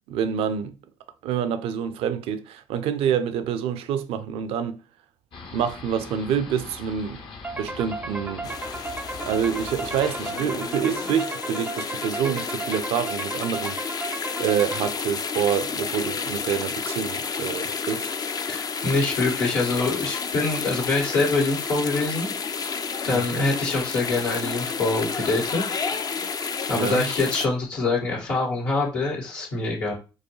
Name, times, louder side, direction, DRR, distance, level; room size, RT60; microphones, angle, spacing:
voice 1, 0.1-0.7 1.2-4.8 5.5-7.2 7.5-8.5 9.2-13.8 14.4-18.1 23.1-23.4 26.2-26.3 26.7-27.0, right 8 dB, 70° right, 0.4 m, -27 dB
Broadmoor Hospital Siren Test, 5.3-11.2, left 4 dB, 55° left, 0.9 m, -40 dB
sound 1, 7.4-15.3, right 2 dB, 15° right, 0.5 m, -35 dB
sound 2, 8.4-27.5, left 5 dB, 40° left, 0.4 m, -31 dB
voice 2, 18.5-22.3 23.0-25.6 26.7-29.9, left 3 dB, 85° left, 1.9 m, -25 dB
4.5 x 2.2 x 3.1 m
hypercardioid pair, 50°, 10 cm